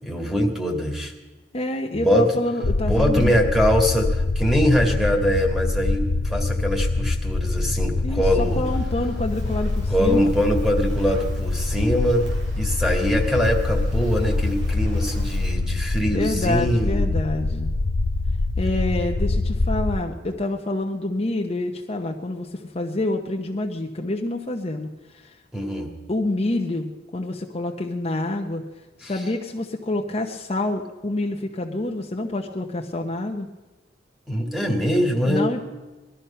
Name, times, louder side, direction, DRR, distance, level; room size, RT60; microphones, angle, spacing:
voice 1, 0.0-1.1 1.9-2.3 2.8-8.6 9.9-12.3 12.6-17.0 25.5-25.9 29.0-29.1 34.3-35.6, equal, ahead, 2 dB, 2.0 m, -22 dB
voice 2, 1.5-3.3 8.0-10.3 16.1-17.7 18.6-25.4 26.1-28.6 29.0-33.5 35.2-35.6, left 2 dB, 35° left, 2 dB, 0.9 m, -27 dB
sound 1, 2.6-20.0, left 2 dB, 80° left, 0.7 m, -24 dB
Fire, 8.4-15.5, equal, 90° right, 4.1 m, -44 dB
19.5 x 12.5 x 5.7 m, 1.2 s
head